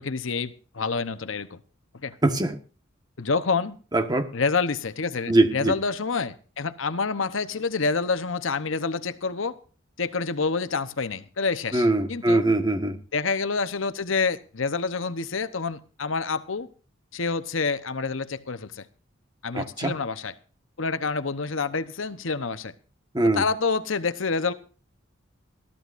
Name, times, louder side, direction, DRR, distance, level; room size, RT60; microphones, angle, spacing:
voice 1, 0.0-1.6 2.0-2.1 3.2-3.8 4.3-9.6 10.0-12.4 13.1-16.7 17.1-18.9 19.4-20.3 20.8-22.7 23.2-24.5, left 4 dB, 75° left, 12 dB, 1.0 m, -27 dB
voice 2, 2.2-2.6 3.9-4.3 5.3-5.7 11.7-13.0 19.5-19.9 23.1-23.4, right 2 dB, 20° right, 7 dB, 1.4 m, -22 dB
21.0 x 14.0 x 2.6 m, 0.39 s
head